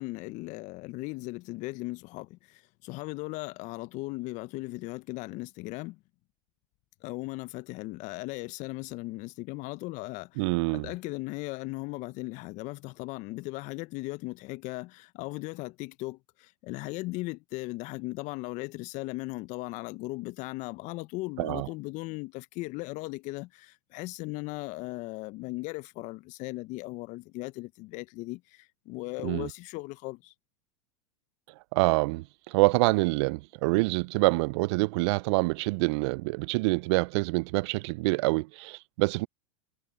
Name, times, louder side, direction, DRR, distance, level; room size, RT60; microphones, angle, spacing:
voice 1, 0.0-6.0 7.0-10.4 10.7-30.3, left 22 dB, 45° left, 1.3 m, -37 dB
voice 2, 10.4-10.9 21.4-21.7 29.2-29.5 31.7-39.3, right 25 dB, 55° right, 0.6 m, -26 dB
hypercardioid pair, 95°, 17 cm